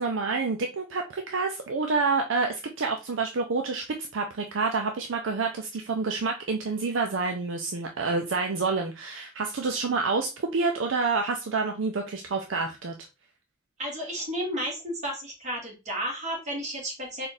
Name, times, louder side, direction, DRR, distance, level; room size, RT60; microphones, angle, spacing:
voice 1, 0.0-12.9, right 4 dB, 70° right, 4 dB, 0.5 m, -28 dB
voice 2, 13.8-17.3, equal, 35° right, -1 dB, 1.6 m, -32 dB
3.5 x 2.4 x 4.1 m, 0.28 s
head